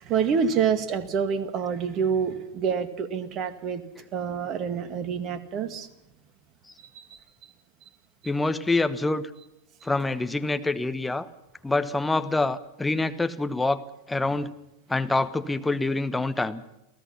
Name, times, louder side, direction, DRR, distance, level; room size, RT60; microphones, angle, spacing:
voice 1, 0.0-3.8 4.1-5.9 6.9-7.2, right 6 dB, 35° right, 12 dB, 2.0 m, -27 dB
voice 2, 8.2-9.3 9.8-11.3 11.6-13.8 14.1-14.5 14.9-16.6, left 2 dB, 10° left, 10 dB, 1.2 m, -26 dB
28.0 x 17.0 x 5.8 m, 0.87 s
figure-of-eight pair, 90°, 0 cm